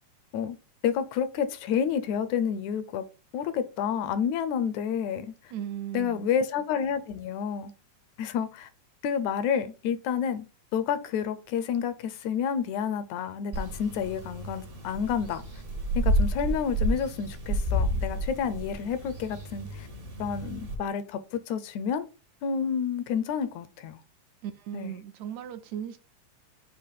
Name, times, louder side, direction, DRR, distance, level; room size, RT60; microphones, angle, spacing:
voice 1, 0.8-3.1 3.3-5.5 5.9-7.7 8.2-8.7 9.0-10.5 10.7-15.4 16.0-19.9 20.2-22.1 22.4-24.0 24.7-25.0, left 7 dB, 80° left, 1.9 m, -29 dB
voice 2, 5.5-6.3 24.4-26.0, right 10 dB, 75° right, 1.8 m, -36 dB
sound 1, 13.5-20.7, equal, 45° right, 0.7 m, -30 dB
5.8 x 2.9 x 5.6 m
omnidirectional pair, 3.4 m